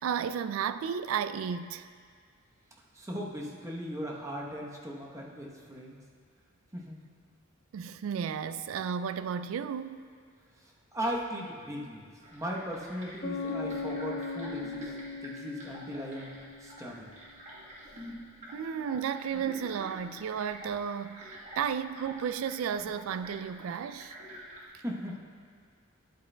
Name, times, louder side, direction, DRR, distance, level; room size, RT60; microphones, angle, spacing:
voice 1, 0.0-1.9 7.7-10.0 18.5-24.1, right 7 dB, 70° right, 0.3 m, -33 dB
voice 2, 2.9-6.0 6.7-7.0 10.9-14.9 15.2-17.1 18.4-18.5 24.8-25.2, equal, 15° right, 0.9 m, -38 dB
sound 1, 12.2-24.7, equal, 35° right, 1.2 m, -47 dB
Bass guitar, 13.2-16.9, left 4 dB, 55° left, 1.4 m, -38 dB
11.0 x 8.2 x 2.2 m
head